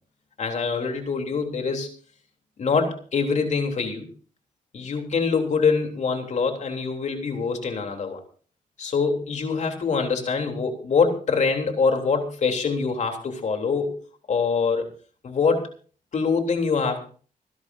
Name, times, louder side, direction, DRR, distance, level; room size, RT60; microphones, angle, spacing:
voice 1, 0.4-1.9 2.6-4.1 4.7-8.2 8.8-14.0 14.3-14.9 15.2-15.7 16.1-17.1, left 5 dB, 55° left, 3 dB, 3.4 m, -24 dB
26.0 x 11.0 x 2.7 m, 0.41 s
cardioid pair, 100°, 14 cm